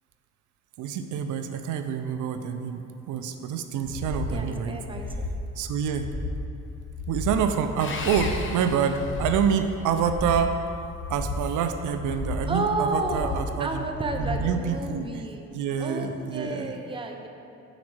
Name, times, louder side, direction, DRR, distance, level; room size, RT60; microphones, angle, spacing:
voice 1, 0.8-4.8 5.6-6.1 7.1-10.6 11.1-13.9 14.1-15.2 15.5-16.7, right 7 dB, 80° right, 7 dB, 0.5 m, -27 dB
sound 1, 3.8-4.4 4.8-5.4 5.8-6.4 6.8-7.4 7.8-8.4 8.8-9.4 9.8-10.4 10.9-11.4 11.9-12.5 12.9-13.5 13.9-14.5 14.9-15.0, left 3 dB, 60° left, 1.5 m, -33 dB
voice 2, 4.3-5.3 12.5-15.4 15.8-17.3, right 2 dB, 15° right, 3 dB, 0.7 m, -31 dB
Sawing, 7.8-9.7, left 4 dB, 40° left, 0.7 m, -36 dB
5.2 x 4.9 x 6.1 m, 2.6 s
cardioid pair, 90°, 30 cm